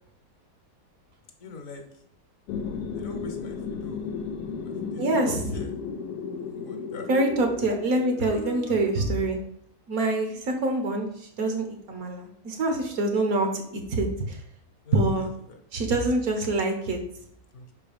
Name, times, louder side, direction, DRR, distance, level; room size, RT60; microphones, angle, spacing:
voice 1, 1.4-1.8 2.9-4.1 4.6-5.7 6.4-7.1 8.2-9.2 10.2-10.4 14.8-15.6 17.5-17.6, left 3 dB, 60° left, 4 dB, 1.3 m, -42 dB
Old temple - atmo drone thriller, 2.5-8.4, left 5 dB, 90° left, 1.2 m, -34 dB
voice 2, 5.0-5.3 7.1-9.4 9.9-11.1 11.4-14.4 14.9-15.3 15.7-17.0, right 2 dB, 65° right, 4 dB, 1.5 m, -25 dB
5.7 x 4.5 x 5.1 m, 0.68 s
omnidirectional pair, 1.7 m